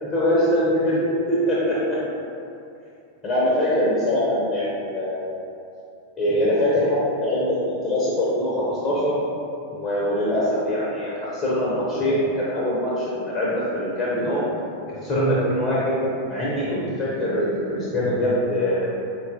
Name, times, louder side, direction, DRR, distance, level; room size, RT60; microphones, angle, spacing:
voice 1, 0.0-1.0 1.3-2.0 3.2-5.4 6.2-9.2 9.7-14.4 15.0-16.0 16.3-18.9, left 1 dB, 25° left, -7 dB, 0.7 m, -23 dB
3.9 x 2.3 x 2.7 m, 2.6 s
figure-of-eight pair, 90°, 0 cm